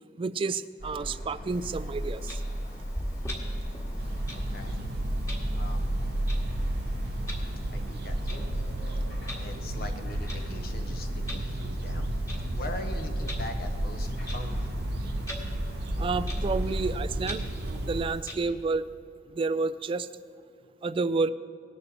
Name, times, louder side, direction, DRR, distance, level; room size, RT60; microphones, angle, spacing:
voice 1, 0.2-2.4 16.0-17.4 17.8-18.9 19.3-20.1 20.8-21.3, right 4 dB, 30° right, 14 dB, 0.3 m, -30 dB
sound 1, 0.8-16.9, equal, 75° left, 3.5 m, -36 dB
Clock, 1.5-18.3, equal, 20° left, 1.8 m, -43 dB
sound 2, 4.0-18.0, right 1 dB, 60° right, 0.7 m, -34 dB
voice 2, 4.3-4.8 5.5-5.9 7.7-8.5 9.4-12.1 12.5-14.7, left 1 dB, 55° left, 5 dB, 1.0 m, -41 dB
18.5 x 10.5 x 2.9 m, 2.4 s
head